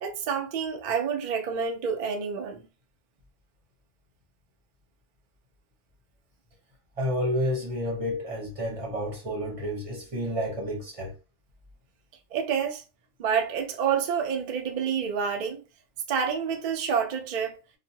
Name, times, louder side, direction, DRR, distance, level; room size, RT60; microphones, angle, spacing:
voice 1, 0.0-2.6 12.3-12.8 13.2-15.6 16.1-17.6, right 7 dB, 75° right, 0.4 m, -28 dB
voice 2, 7.0-11.1, equal, 30° right, 0.8 m, -30 dB
3.0 x 2.0 x 2.8 m
omnidirectional pair, 1.5 m